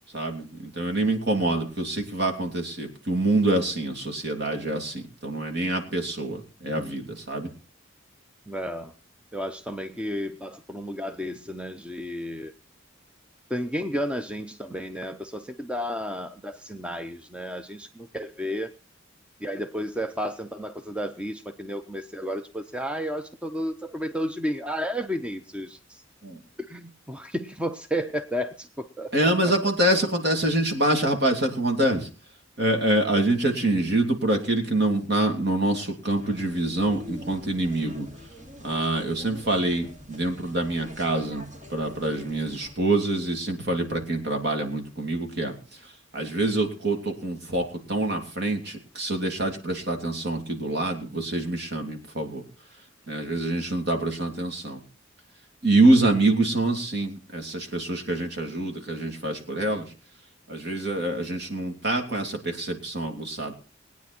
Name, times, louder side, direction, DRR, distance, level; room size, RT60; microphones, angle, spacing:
voice 1, 0.1-7.5 26.2-26.4 29.1-32.1 32.6-38.1 38.6-45.5 46.1-52.4 53.1-54.8 55.6-59.9 60.5-63.5, right 2 dB, 55° right, 4 dB, 2.9 m, -25 dB
voice 2, 8.5-8.9 9.3-12.5 13.5-18.7 19.4-26.0 26.6-29.1 29.4-29.5, equal, 5° right, 8 dB, 0.6 m, -32 dB
sound 1, 36.1-42.7, left 1 dB, 40° right, 2.8 m, -45 dB
20.5 x 9.4 x 4.4 m, 0.34 s
head